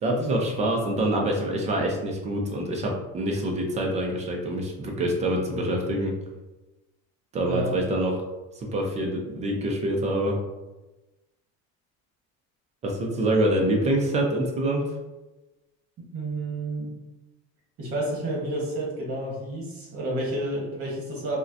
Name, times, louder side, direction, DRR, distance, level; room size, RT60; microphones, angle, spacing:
voice 1, 0.0-6.1 7.3-8.1 8.6-10.4 12.8-14.8, right 1 dB, 20° right, 0 dB, 0.4 m, -25 dB
voice 2, 7.3-7.8 16.1-17.0 17.8-21.4, right 1 dB, 40° right, -3 dB, 1.1 m, -30 dB
4.9 x 2.1 x 2.6 m, 1.1 s
cardioid pair, 175°, 34 cm